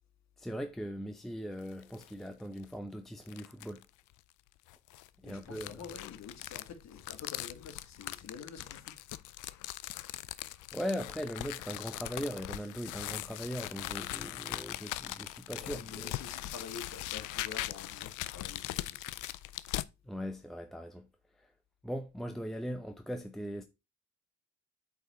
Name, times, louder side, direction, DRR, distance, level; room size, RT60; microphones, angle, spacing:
voice 1, 0.4-3.8 5.2-5.8 10.7-16.1 20.0-21.1 21.4-21.5 21.8-23.6, equal, ahead, 0.7 m, -39 dB
sound 1, 1.6-2.1 2.6-2.7 3.3-3.8 4.7-19.9, left 16 dB, 85° left, 0.5 m, -41 dB
voice 2, 5.2-8.9 15.6-19.2, left 6 dB, 65° left, 1.7 m, -48 dB
8.3 x 3.5 x 4.2 m
cardioid pair, 90°, 30 cm